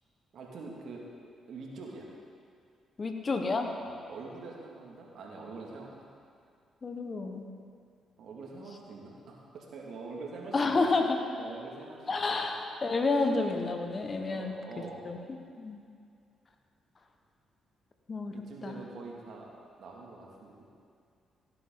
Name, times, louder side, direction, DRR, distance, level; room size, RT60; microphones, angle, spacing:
voice 1, 0.3-1.0 1.5-2.1 3.8-6.1 8.2-10.9 11.4-12.4 14.3-15.3 18.3-19.5 19.8-20.7, right 3 dB, 65° right, -1 dB, 2.1 m, -45 dB
voice 2, 3.0-3.7 6.8-7.5 10.5-11.2 12.1-14.5 15.0-15.2 15.6-15.8 18.1-18.3 18.6-18.8, left 3 dB, 40° left, 4 dB, 1.3 m, -29 dB
17.0 x 9.5 x 3.9 m, 2.3 s
hypercardioid pair, 45°, 0 cm